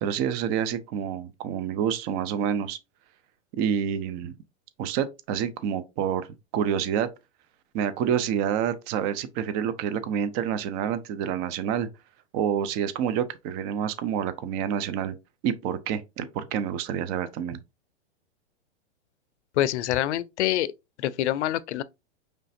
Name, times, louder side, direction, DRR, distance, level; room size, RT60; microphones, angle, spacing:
voice 1, 0.0-2.8 3.5-4.3 4.8-6.3 6.5-7.1 7.7-11.9 12.3-15.1 15.4-17.6, right 8 dB, 30° right, 0.4 m, -28 dB
voice 2, 19.6-20.7 21.0-21.8, left 13 dB, 75° left, 0.5 m, -25 dB
5.0 x 3.3 x 2.6 m
hypercardioid pair, 135°, 34 cm